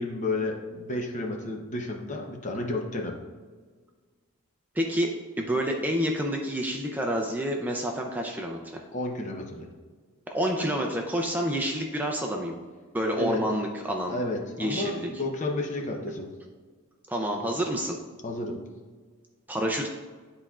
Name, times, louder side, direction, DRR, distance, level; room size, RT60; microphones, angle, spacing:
voice 1, 0.0-3.1 8.9-9.7 13.2-13.4 14.1-16.3 18.2-18.6, left 2 dB, 35° left, 1 dB, 0.8 m, -31 dB
voice 2, 4.7-8.8 10.3-12.6 12.9-14.2 14.6-15.1 17.1-18.0 19.5-19.9, equal, 10° right, 1 dB, 0.4 m, -28 dB
10.0 x 4.3 x 2.4 m, 1.5 s
head